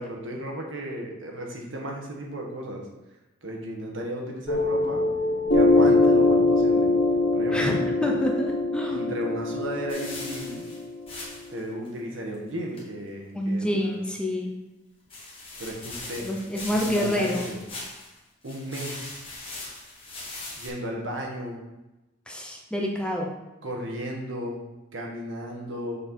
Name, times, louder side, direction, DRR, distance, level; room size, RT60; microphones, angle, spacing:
voice 1, 0.0-2.9 3.4-5.0 5.5-6.9 7.3-8.0 8.9-10.7 11.5-14.0 15.6-16.3 16.7-17.6 18.4-19.3 20.6-21.6 23.6-24.6 24.9-26.0, equal, 70° right, 0 dB, 1.4 m, -35 dB
Piano, 4.5-11.5, left 2 dB, 75° left, 1.4 m, -23 dB
voice 2, 7.5-9.1 13.3-14.5 16.2-17.4 22.3-23.3, equal, 5° left, 0 dB, 0.7 m, -27 dB
sound 1, 9.9-11.6 11.9-12.0 12.3-12.4 12.7-12.8 15.1-18.2 18.4-20.7, left 2 dB, 30° left, 1.7 m, -39 dB
6.6 x 4.4 x 4.4 m, 1.0 s
head